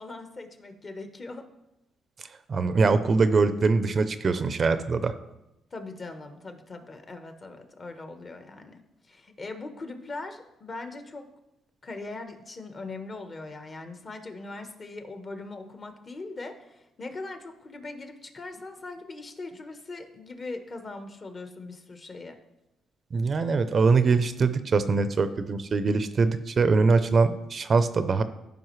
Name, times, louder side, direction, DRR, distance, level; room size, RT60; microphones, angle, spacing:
voice 1, 0.0-1.4 5.7-11.3 11.8-22.4, left 3 dB, 40° left, 6 dB, 1.1 m, -40 dB
voice 2, 2.5-5.1 23.1-28.2, right 4 dB, 45° right, 11 dB, 0.5 m, -23 dB
14.0 x 5.1 x 3.2 m, 0.91 s
cardioid pair, 90°, 0 cm